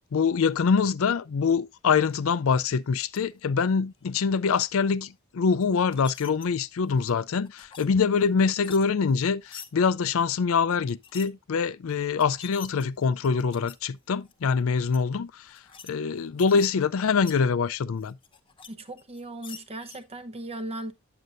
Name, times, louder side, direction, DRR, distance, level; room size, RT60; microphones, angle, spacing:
voice 1, 0.1-18.2, left 5 dB, 65° left, 0.4 m, -24 dB
sound 1, 3.0-3.2 4.1-4.6 5.6-6.5 6.9-7.9 8.2-9.7 10.9-11.3 11.9-12.0 12.2-13.8 14.3-14.5 14.9-15.0 15.4-15.9 16.2-17.4 18.0-18.7 19.0-20.0, left 7 dB, 25° left, 0.8 m, -47 dB
voice 2, 18.7-20.9, right 1 dB, 30° right, 0.9 m, -37 dB
9.2 x 7.7 x 2.5 m
head